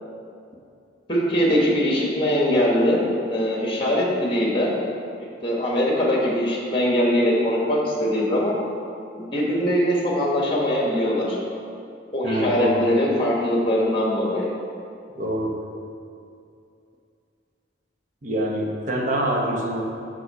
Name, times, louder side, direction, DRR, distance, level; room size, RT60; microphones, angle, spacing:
voice 1, 1.1-4.8 5.4-8.6 9.1-11.4 12.1-14.5, equal, 25° left, -3 dB, 1.3 m, -22 dB
voice 2, 12.2-12.9 15.2-15.6 18.2-19.8, right 1 dB, 40° right, -1 dB, 1.0 m, -25 dB
7.0 x 6.1 x 4.7 m, 2.5 s
head